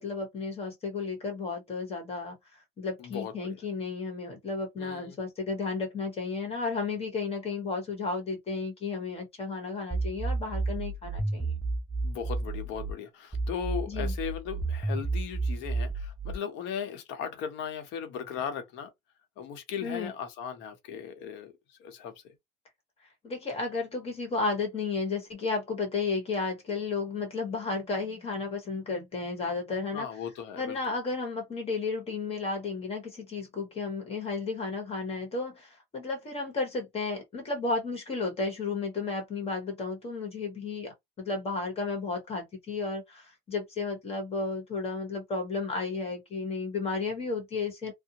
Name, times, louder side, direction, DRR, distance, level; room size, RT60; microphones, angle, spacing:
voice 1, 0.0-11.5 13.9-14.1 19.8-20.1 23.2-30.1 30.6-47.9, left 4 dB, 30° left, 1.2 m, -33 dB
voice 2, 3.0-3.6 4.8-5.2 12.0-18.9 19.4-22.3 29.9-30.8, left 8 dB, 65° left, 0.9 m, -37 dB
sound 1, 9.9-12.9 13.3-16.4, right 3 dB, 5° right, 0.3 m, -31 dB
2.6 x 2.1 x 2.8 m
cardioid pair, 125°, 20 cm